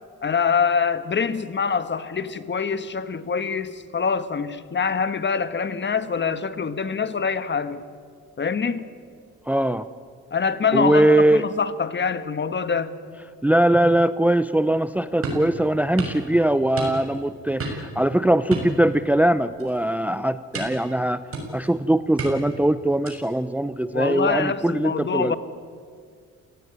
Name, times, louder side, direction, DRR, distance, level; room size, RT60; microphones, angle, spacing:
voice 1, 0.2-7.8 8.4-8.9 10.3-13.0 23.9-25.4, left 6 dB, 35° left, 12 dB, 1.6 m, -25 dB
voice 2, 9.5-9.9 10.7-11.4 13.4-21.2 21.5-25.3, right 1 dB, 5° right, 13 dB, 0.7 m, -21 dB
sound 1, 15.2-15.5 16.0-16.2 16.8-17.2 17.6-17.9 18.5-19.3 19.6-19.8 20.5-20.9 21.3-21.7 22.2-22.6 23.0-23.4, right 2 dB, 45° right, 6.7 m, -31 dB
28.5 x 18.0 x 9.6 m, 2.1 s
cardioid pair, 90°, 30 cm